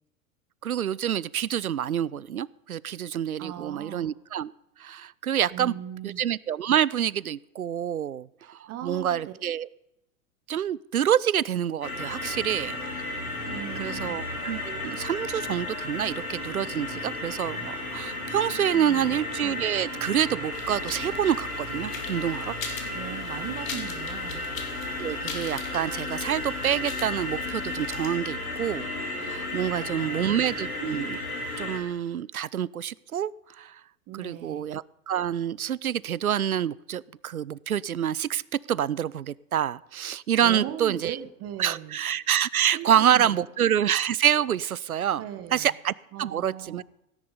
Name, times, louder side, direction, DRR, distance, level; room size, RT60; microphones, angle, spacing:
voice 1, 0.6-4.5 4.8-5.8 6.0-9.7 10.5-12.8 13.8-22.5 25.0-31.2 31.6-33.3 33.6-33.8 34.2-38.4 38.7-41.2 41.6-45.2 45.5-46.8, right 10 dB, 85° right, 23 dB, 0.5 m, -27 dB
voice 2, 3.4-4.1 5.5-6.2 8.7-9.3 13.5-14.2 18.7-19.2 22.9-24.5 29.7-30.4 34.1-34.6 40.4-41.9 42.7-43.4 45.2-45.7 46.1-46.8, right 11 dB, 35° right, 8 dB, 1.3 m, -39 dB
sound 1, 11.8-31.8, left 2 dB, 85° left, 3.6 m, -34 dB
sound 2, 20.5-28.1, left 7 dB, 65° left, 2.6 m, -41 dB
17.0 x 10.5 x 5.0 m, 0.88 s
figure-of-eight pair, 85°, 42 cm